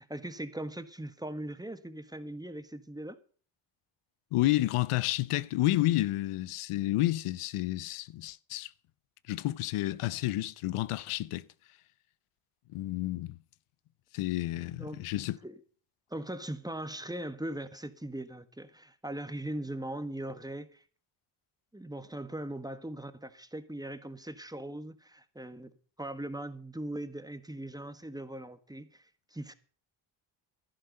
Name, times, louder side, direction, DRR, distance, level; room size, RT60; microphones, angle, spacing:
voice 1, 0.0-3.2 14.5-15.0 15.4-15.6 16.1-20.8 21.7-25.7 26.0-29.5, right 1 dB, 10° right, 1.5 m, -40 dB
voice 2, 4.3-8.7 9.3-11.4 12.7-13.4 14.1-15.4, left 16 dB, 85° left, 0.7 m, -30 dB
11.5 x 11.0 x 6.5 m
cardioid pair, 60°, 50 cm